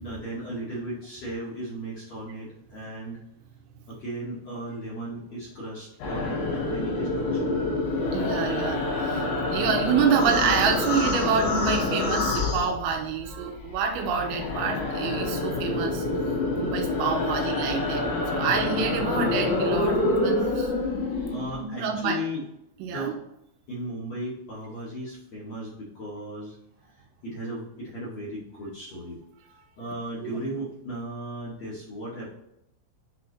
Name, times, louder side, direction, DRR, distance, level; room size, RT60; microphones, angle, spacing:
voice 1, 0.0-3.2 3.9-7.6 21.3-22.4 22.9-23.1 23.7-26.6 27.2-29.2 29.8-32.3, right 1 dB, 50° left, -9 dB, 2.2 m, -36 dB
sound 1, 6.0-13.3 13.6-21.6, left 2 dB, 85° left, 4.6 m, -27 dB
voice 2, 8.1-9.2 9.5-16.1 16.6-18.1 18.3-20.7 21.5-22.2 22.8-23.1 30.2-30.4, right 6 dB, 90° right, 2 dB, 3.8 m, -27 dB
9.2 x 4.0 x 3.0 m, 0.80 s
omnidirectional pair, 5.9 m